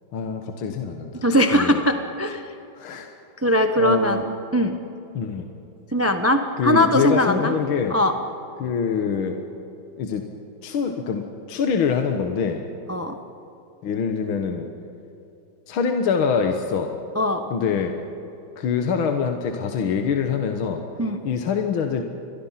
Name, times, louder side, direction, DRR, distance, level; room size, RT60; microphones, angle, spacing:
voice 1, 0.1-1.2 1.5-1.8 2.8-3.1 3.8-4.2 5.1-5.5 6.6-8.0 8.6-9.4 10.0-10.2 10.6-12.6 13.8-14.7 15.7-16.9 17.5-17.9 18.6-20.8 21.2-22.0, left 6 dB, 70° left, 4 dB, 2.0 m, -24 dB
voice 2, 1.2-2.4 3.4-4.3 4.5-4.8 5.9-7.5 7.9-8.1 12.9-13.2 17.1-17.4 21.0-21.2, equal, 20° right, 6 dB, 0.4 m, -20 dB
29.0 x 22.5 x 5.8 m, 2.9 s
omnidirectional pair, 2.4 m